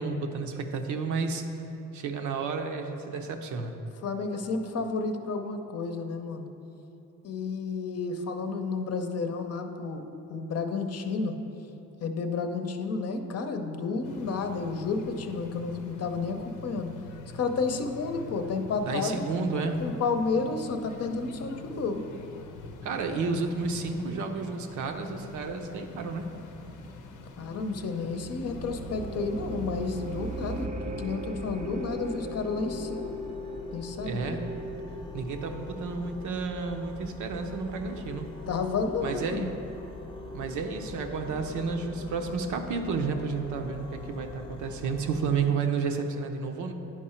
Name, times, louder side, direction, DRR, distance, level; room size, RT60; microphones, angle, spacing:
voice 1, 0.0-1.4 1.9-3.8 18.9-19.8 22.8-26.3 34.0-34.4 35.1-38.3 39.0-39.5 40.3-46.7, right 4 dB, 75° right, 4 dB, 0.8 m, -31 dB
voice 2, 4.0-6.5 7.2-11.4 12.0-16.9 17.3-22.0 27.4-33.1 33.7-34.4 37.9-38.0 38.5-39.5, left 4 dB, 55° left, 6 dB, 0.7 m, -31 dB
sound 1, 14.0-30.7, left 2 dB, 90° left, 0.7 m, -45 dB
sound 2, 26.3-36.5, right 1 dB, 25° right, 0.5 m, -39 dB
sound 3, 28.5-45.5, left 3 dB, 15° left, 0.7 m, -43 dB
10.0 x 4.7 x 4.4 m, 3.0 s
cardioid pair, 90°, 30 cm